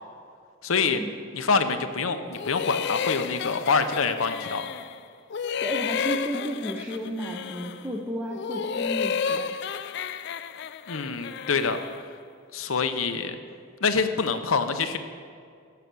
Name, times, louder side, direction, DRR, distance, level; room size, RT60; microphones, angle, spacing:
voice 1, 0.6-1.0 1.3-4.7 10.9-11.8 12.5-13.4 13.8-15.0, left 5 dB, 90° left, 8 dB, 0.8 m, -25 dB
sound 1, 2.3-5.0 5.3-7.9 8.3-12.1, left 6 dB, 55° left, 0.4 m, -31 dB
voice 2, 5.6-9.5, equal, 10° right, -1 dB, 0.8 m, -33 dB
15.5 x 6.8 x 6.2 m, 2.2 s
head